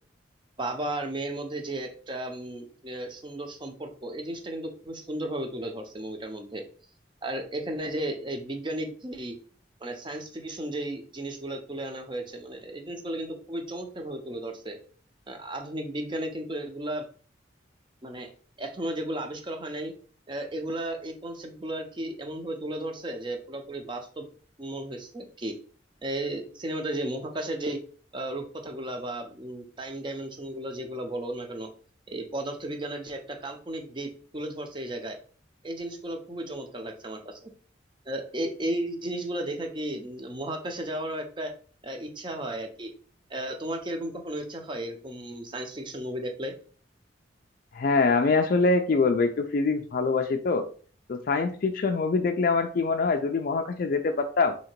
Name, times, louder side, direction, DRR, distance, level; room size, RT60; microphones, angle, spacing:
voice 1, 0.6-6.6 7.2-9.4 9.8-14.8 15.3-17.1 18.0-18.3 18.6-19.9 20.3-24.3 24.6-25.5 26.0-27.8 28.1-31.7 32.1-35.2 35.6-37.5 38.1-41.5 41.8-42.9 43.3-46.5, right 1 dB, 25° right, 4 dB, 0.7 m, -34 dB
voice 2, 47.7-50.7 51.1-54.6, left 4 dB, 50° left, 5 dB, 0.3 m, -24 dB
3.7 x 2.8 x 4.4 m, 0.43 s
head